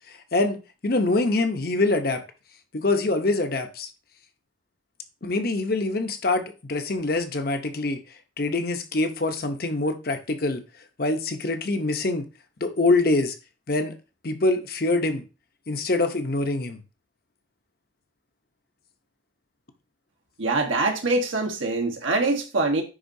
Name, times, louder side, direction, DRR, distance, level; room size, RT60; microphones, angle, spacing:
voice 1, 0.1-2.2 2.7-3.9 5.2-8.0 8.4-10.6 11.0-12.2 12.6-13.3 13.7-13.9 14.2-15.2 15.7-16.8, left 2 dB, 50° left, 0.8 m, -24 dB
voice 2, 20.4-22.8, right 2 dB, 85° right, 1.3 m, -24 dB
9.9 x 4.0 x 2.7 m
head